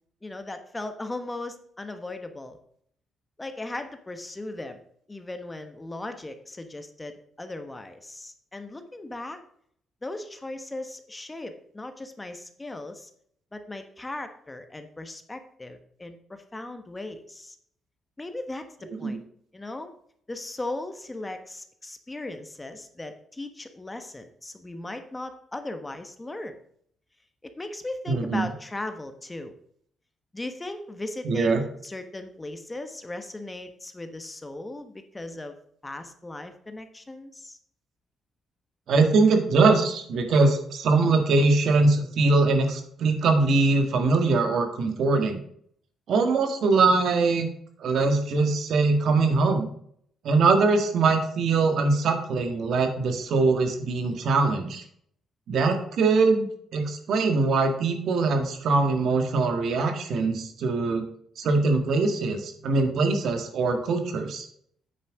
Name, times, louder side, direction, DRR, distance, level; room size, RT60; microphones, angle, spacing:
voice 1, 0.2-2.6 3.4-4.8 5.1-9.4 10.0-13.1 13.5-17.6 18.2-19.2 19.5-19.9 20.3-26.5 27.4-29.5 30.3-35.6 35.8-37.6, left 2 dB, 20° left, 8 dB, 1.2 m, -37 dB
voice 2, 28.1-28.5 31.2-31.6 38.9-45.4 46.1-47.5 47.8-49.7 50.2-54.8 55.5-61.0 61.4-64.5, right 3 dB, 70° right, 6 dB, 1.7 m, -22 dB
8.6 x 6.0 x 4.9 m, 0.65 s
cardioid pair, 90°, 0 cm